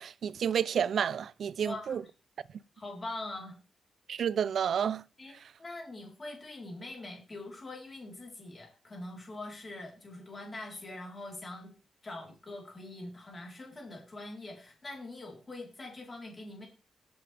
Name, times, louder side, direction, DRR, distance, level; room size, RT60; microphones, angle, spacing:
voice 1, 0.0-2.0 4.1-5.0, right 8 dB, 65° right, 0.4 m, -30 dB
voice 2, 1.6-2.0 2.8-3.6 5.2-11.7 12.0-16.7, left 2 dB, 25° left, 3.9 m, -43 dB
17.5 x 7.9 x 3.4 m
wide cardioid pair, 160°, 0 cm